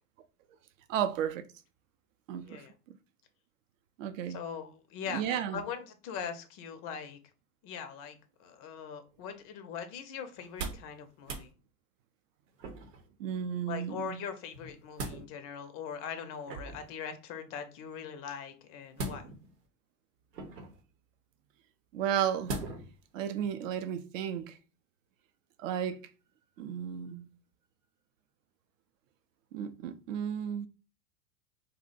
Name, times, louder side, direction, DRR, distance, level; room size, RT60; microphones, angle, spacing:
voice 1, 0.9-1.4 2.3-3.0 4.0-4.4 5.1-5.6 13.2-14.2 21.9-22.5 23.1-24.6 25.6-26.0 26.6-27.3 29.5-30.7, right 9 dB, 55° right, 0.5 m, -33 dB
voice 2, 4.3-7.2 7.6-11.5 13.7-19.3, left 7 dB, 30° left, 0.4 m, -41 dB
sound 1, 10.4-10.9 11.2-11.5 12.6-13.1 14.5-15.2 16.5-16.9 18.9-19.6 20.3-20.8 22.5-23.0 23.4-23.5, right 2 dB, 85° right, 0.9 m, -39 dB
2.6 x 2.1 x 3.9 m
hypercardioid pair, 95°, 48 cm